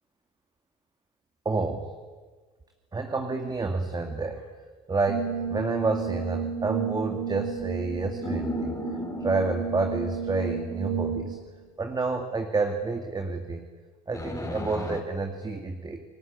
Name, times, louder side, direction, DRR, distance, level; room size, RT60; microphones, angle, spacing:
voice 1, 1.4-1.9 2.9-4.5 4.9-8.8 9.2-11.4 11.8-13.7 14.1-16.0, right 3 dB, 25° right, 4 dB, 2.3 m, -29 dB
Brass instrument, 5.1-11.5, right 7 dB, 70° right, 6.1 m, -32 dB
sound 1, 8.2-10.0 14.1-15.0, left 3 dB, 20° left, 4.5 m, -35 dB
29.5 x 19.5 x 8.5 m, 1.4 s
supercardioid pair, 90°, 18 cm